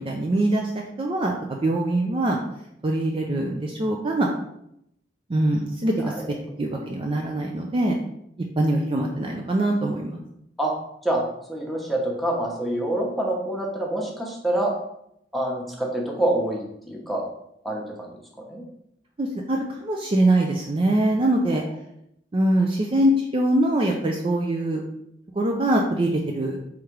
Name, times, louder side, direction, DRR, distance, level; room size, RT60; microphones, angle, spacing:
voice 1, 0.0-2.4 2.8-4.3 5.3-6.1 6.6-8.0 8.6-10.2 19.2-21.6 22.3-24.8 25.4-26.6, right 1 dB, 30° right, 1 dB, 0.4 m, -23 dB
voice 2, 6.0-6.3 10.6-10.7 11.0-11.2 11.5-14.7 15.3-17.2 17.6-18.1 18.4-18.6, right 1 dB, ahead, -2 dB, 0.9 m, -26 dB
3.6 x 3.2 x 4.5 m, 0.76 s
head